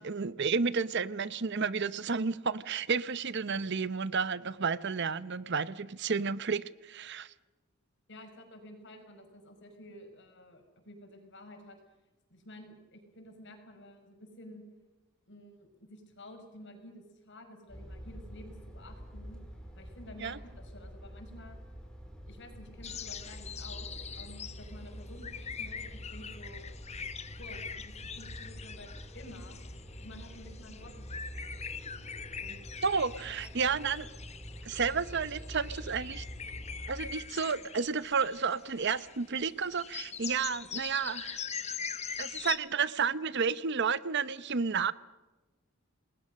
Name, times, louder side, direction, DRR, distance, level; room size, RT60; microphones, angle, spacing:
voice 1, 0.0-7.3 20.2-20.4 32.8-34.1 34.6-36.2 36.9-41.4 42.2-44.9, right 5 dB, 55° right, 16 dB, 0.8 m, -31 dB
voice 2, 8.1-11.8 12.3-14.6 15.3-19.4 19.8-21.6 22.3-26.7 27.3-29.6 30.0-31.6 32.4-32.7 33.3-33.4, left 1 dB, 55° left, 5 dB, 5.8 m, -51 dB
sound 1, 17.7-37.1, equal, 5° left, 4.2 m, -46 dB
sound 2, 22.8-42.6, left 7 dB, 30° left, 1.2 m, -43 dB
29.5 x 20.5 x 6.4 m, 1.1 s
head